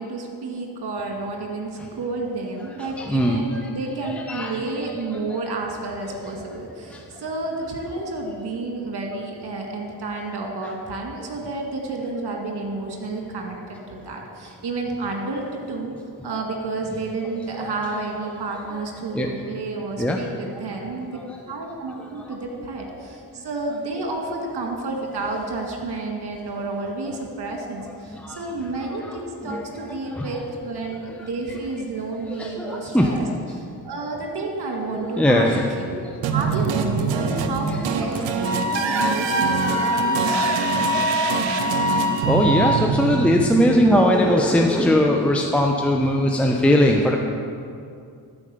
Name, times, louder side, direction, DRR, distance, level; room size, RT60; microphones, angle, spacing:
voice 1, 0.0-16.0 16.2-21.1 21.5-33.3 33.5-35.5 35.8-36.1 36.3-40.3, right 3 dB, 65° right, 1 dB, 2.0 m, -30 dB
voice 2, 2.8-3.6 4.0-4.6 6.9-7.0 17.6-17.7 19.1-19.3 20.0-20.2 22.2-22.3 28.1-28.4 29.4-29.6 30.1-30.2 32.3-33.1 35.2-35.6 37.2-37.4 37.7-37.9 39.7-40.2 42.3-47.2, equal, 5° left, 1 dB, 0.9 m, -20 dB
sound 1, 36.2-44.5, right 6 dB, 90° right, 0.8 m, -25 dB
Wind instrument woodwind instrument, 38.4-42.9, left 2 dB, 35° right, 2.3 m, -24 dB
12.5 x 5.0 x 6.8 m, 2.4 s
supercardioid pair, 45°, 43 cm